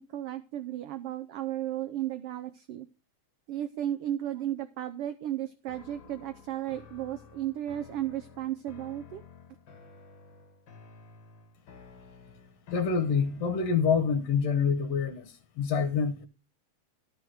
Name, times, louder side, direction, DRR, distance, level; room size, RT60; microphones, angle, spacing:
voice 1, 0.0-2.9 3.5-9.2, right 12 dB, 75° right, 1.4 m, -34 dB
sound 1, 5.7-13.7, left 5 dB, 45° left, 2.1 m, -52 dB
voice 2, 12.7-16.3, left 6 dB, 65° left, 2.1 m, -27 dB
13.0 x 5.0 x 6.2 m
omnidirectional pair, 3.3 m